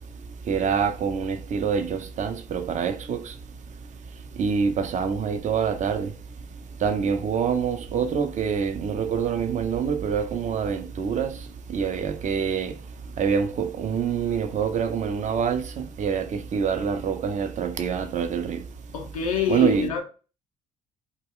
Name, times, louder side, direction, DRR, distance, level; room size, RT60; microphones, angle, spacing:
voice 1, 0.5-3.3 4.4-6.1 6.8-11.4 11.7-12.8 13.2-18.6 19.5-19.9, right 6 dB, 45° right, 0.5 m, -26 dB
voice 2, 18.9-20.0, left 6 dB, 85° left, 0.4 m, -26 dB
2.3 x 2.1 x 3.5 m
hypercardioid pair, 50°, 18 cm